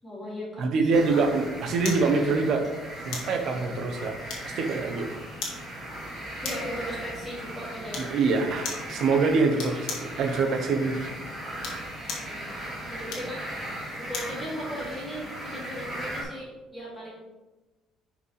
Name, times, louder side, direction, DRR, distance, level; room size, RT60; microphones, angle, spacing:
voice 1, 0.0-0.6 0.9-1.2 6.4-8.1 12.2-12.6 12.9-13.4 14.1-17.2, equal, 5° left, -7 dB, 2.6 m, -37 dB
voice 2, 0.6-2.7 3.0-4.2 4.4-5.2 8.0-11.1, right 4 dB, 45° right, 5 dB, 1.0 m, -25 dB
sound 1, 0.9-16.2, right 1 dB, 15° right, 2.6 m, -38 dB
sound 2, 1.8-2.1 3.1-3.4 4.3-4.7 5.4-5.6 6.4-6.8 7.9-8.2 8.6-8.9 9.6-10.1 11.5-12.3 13.1-14.4 14.8-15.0, left 4 dB, 55° left, 1.7 m, -36 dB
10.0 x 5.2 x 3.3 m, 1.1 s
cardioid pair, 180°, 0 cm